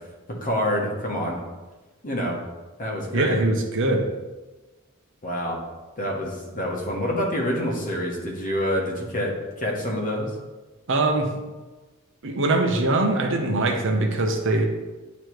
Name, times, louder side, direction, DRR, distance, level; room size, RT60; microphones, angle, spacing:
voice 1, 0.4-1.4 2.0-2.4 2.8-3.4 5.2-5.6 6.0-10.3, equal, 40° left, -1 dB, 1.4 m, -27 dB
voice 2, 3.1-4.1 10.9-11.3 12.2-14.7, right 2 dB, 60° right, 3 dB, 0.9 m, -22 dB
9.2 x 3.1 x 4.7 m, 1.2 s
head